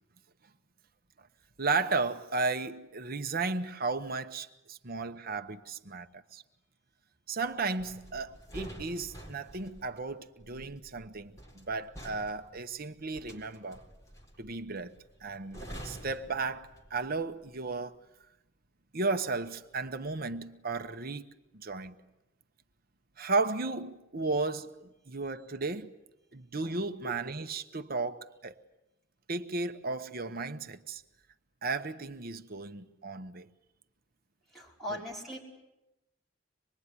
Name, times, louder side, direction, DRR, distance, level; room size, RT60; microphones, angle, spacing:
voice 1, 1.6-6.4 7.3-13.9 14.4-14.9 15.2-18.0 18.9-21.2 21.5-21.9 23.2-25.9 26.3-28.6 29.3-31.0 31.6-33.5 34.9-35.0, right 3 dB, 50° right, 1.0 m, -34 dB
sound 1, 7.8-17.1 17.4-17.7, right 1 dB, 15° left, 4.2 m, -48 dB
voice 2, 34.5-35.4, equal, ahead, 5.3 m, -39 dB
25.5 x 21.5 x 9.8 m
head